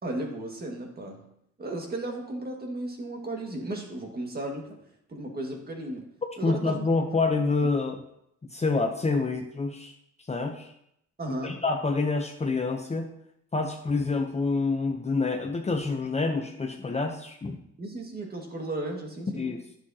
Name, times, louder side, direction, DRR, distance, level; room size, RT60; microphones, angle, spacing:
voice 1, 0.0-1.2 1.6-4.7 5.1-6.1 6.4-6.8 11.2-11.6 17.8-19.5, right 1 dB, 30° right, 1 dB, 1.9 m, -35 dB
voice 2, 6.4-8.0 8.5-9.9 10.3-10.7 11.4-13.1 13.5-17.6 19.4-19.6, left 3 dB, 20° left, 3 dB, 0.8 m, -27 dB
10.0 x 6.4 x 2.9 m, 0.75 s
cardioid pair, 90°, 30 cm